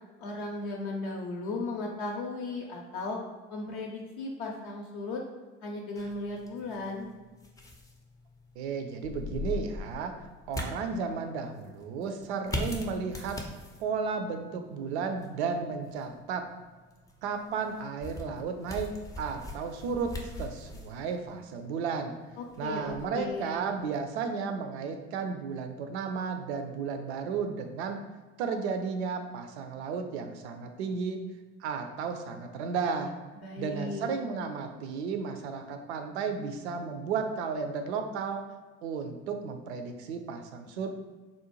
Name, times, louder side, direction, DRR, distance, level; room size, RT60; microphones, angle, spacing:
voice 1, 0.2-3.2 3.5-5.2 5.6-7.1 22.4-23.6 33.4-34.0, left 2 dB, 55° left, -1 dB, 0.5 m, -36 dB
sound 1, 6.0-24.0, left 2 dB, 10° left, 0.4 m, -42 dB
voice 2, 8.6-13.4 13.8-16.5 17.2-18.9 19.2-20.1 20.4-22.1 22.6-28.0 28.4-31.2 31.6-33.1 33.6-38.4 38.8-40.9, right 5 dB, 65° right, 6 dB, 0.5 m, -33 dB
3.8 x 2.1 x 3.0 m, 1.3 s
figure-of-eight pair, 55°, 36 cm